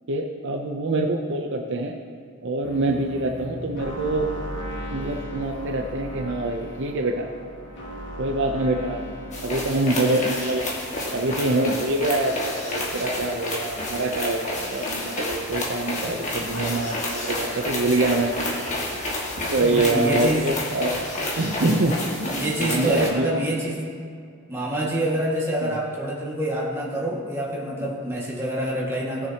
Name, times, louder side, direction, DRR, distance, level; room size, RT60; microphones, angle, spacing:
voice 1, 0.1-2.0 2.4-4.3 4.9-7.3 8.2-9.1 9.4-10.6 11.1-18.3 19.4-20.9 21.4-23.4 25.6-25.7 27.8-27.9, right 2 dB, 60° right, 2 dB, 0.6 m, -25 dB
sound 1, 2.6-9.6, equal, 55° left, 2.0 m, -36 dB
Running on the road, 9.3-23.1, left 1 dB, 35° left, 1.6 m, -30 dB
voice 2, 19.6-20.5 22.4-23.8 24.5-29.3, right 1 dB, 10° right, -6 dB, 1.9 m, -26 dB
18.0 x 6.6 x 2.9 m, 2.2 s
head